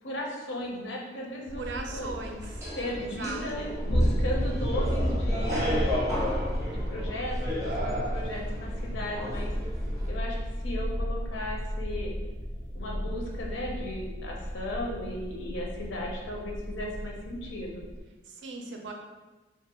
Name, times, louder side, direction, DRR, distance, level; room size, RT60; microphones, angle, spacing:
voice 1, 0.0-2.1 2.7-6.0 6.7-9.5 10.1-10.4 10.6-12.1 12.7-17.8, left 1 dB, 85° left, -1 dB, 0.6 m, -36 dB
sound 1, 1.5-18.0, equal, 40° left, 0.4 m, -32 dB
voice 2, 1.5-2.5 3.0-3.7 18.3-18.9, right 3 dB, 75° right, 2 dB, 0.4 m, -38 dB
sound 2, 1.9-10.1, equal, 15° right, 0.5 m, -35 dB
2.4 x 2.3 x 2.9 m, 1.2 s
head